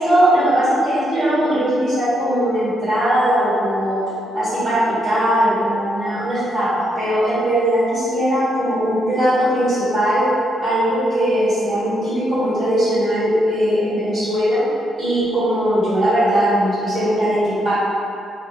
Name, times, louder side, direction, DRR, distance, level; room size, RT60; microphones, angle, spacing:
voice 1, 0.0-4.0 4.3-10.2 10.6-14.6 15.0-17.7, equal, 45° right, -13 dB, 1.5 m, -19 dB
3.2 x 2.7 x 3.4 m, 2.7 s
cardioid pair, 170°, 0 cm